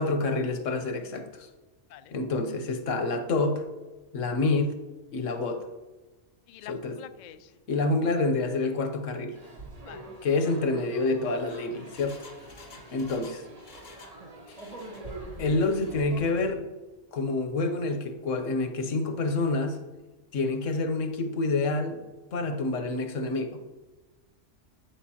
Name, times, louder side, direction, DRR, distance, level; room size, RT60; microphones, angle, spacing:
voice 1, 0.0-1.5 2.1-3.6 4.1-4.7 5.1-5.6 6.7-7.0 7.7-9.4 10.2-12.2 12.9-13.4 14.5-14.6 15.4-16.6 17.1-19.8 20.3-22.0 22.3-23.6, left 3 dB, 85° left, 6 dB, 1.2 m, -27 dB
voice 2, 6.5-7.5 9.8-10.1 12.6-12.8, left 10 dB, 70° left, 11 dB, 0.4 m, -47 dB
sound 1, 9.3-16.5, right 1 dB, 30° right, 1.1 m, -44 dB
Engine, 11.4-14.2 14.5-15.1 15.5-16.1 16.4-16.5, left 3 dB, 45° left, 1.0 m, -52 dB
8.7 x 7.2 x 2.9 m, 1.2 s
omnidirectional pair, 1.3 m